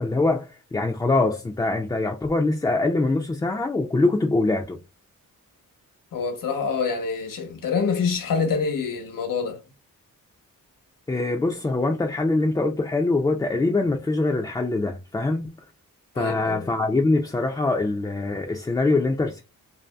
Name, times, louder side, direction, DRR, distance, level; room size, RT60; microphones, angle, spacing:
voice 1, 0.0-4.8 11.1-15.5 16.2-19.4, left 2 dB, 10° left, 0.3 m, -23 dB
voice 2, 6.1-9.6 16.2-16.7, left 5 dB, 70° left, 0.9 m, -26 dB
2.6 x 2.3 x 2.2 m
cardioid pair, 80°, 34 cm